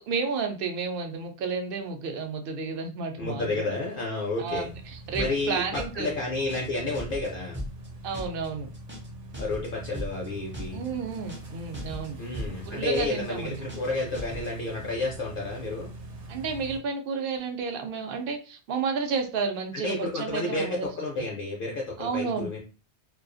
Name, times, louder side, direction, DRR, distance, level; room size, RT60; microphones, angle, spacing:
voice 1, 0.1-3.7 4.4-6.1 8.0-8.7 10.7-12.2 12.7-13.6 16.3-20.9 22.0-22.5, right 5 dB, 60° right, 5 dB, 0.7 m, -31 dB
voice 2, 3.2-4.7 5.2-7.6 9.4-10.8 12.2-15.9 19.7-22.6, left 2 dB, 60° left, -1 dB, 0.7 m, -31 dB
sound 1, 4.4-16.8, right 2 dB, 85° right, 0.9 m, -43 dB
sound 2, 5.1-5.5 5.7-6.1 6.3-6.7 6.9-7.3 7.5-7.9 8.1-8.5 8.7-9.1 9.3-9.7 9.9-10.3 10.5-10.9 11.1-11.5 11.7-12.1 12.3-12.7 12.9-13.3 13.5-13.9 14.1-14.5, equal, 15° right, 0.4 m, -37 dB
2.3 x 2.3 x 2.5 m, 0.35 s
omnidirectional pair, 1.2 m